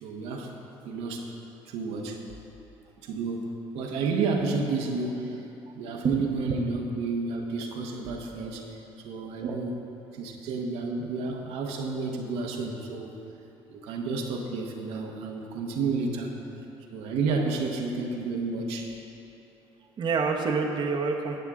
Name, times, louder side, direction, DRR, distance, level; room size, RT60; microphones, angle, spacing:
voice 1, 0.0-0.5 0.8-1.3 1.6-2.2 3.0-5.5 5.7-9.8 10.1-13.1 13.7-16.3 16.9-18.9, right 4 dB, 80° right, 0 dB, 1.1 m, -31 dB
voice 2, 6.2-6.6 9.4-9.6 20.0-21.4, right 4 dB, 45° right, 2 dB, 0.9 m, -28 dB
13.0 x 8.1 x 3.7 m, 2.8 s
supercardioid pair, 75°, 10 cm